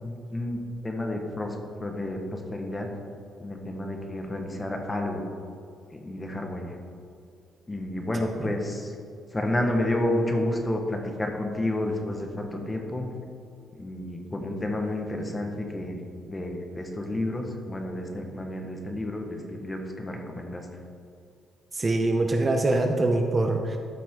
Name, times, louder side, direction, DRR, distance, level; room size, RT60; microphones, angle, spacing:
voice 1, 0.0-2.9 3.4-5.3 5.9-6.8 7.7-8.9 9.3-13.1 13.8-16.0 16.3-20.7, left 1 dB, 20° left, 2 dB, 1.4 m, -30 dB
voice 2, 21.7-23.8, right 2 dB, 30° right, 3 dB, 0.8 m, -24 dB
13.5 x 5.8 x 3.8 m, 2.3 s
cardioid pair, 90°, 0 cm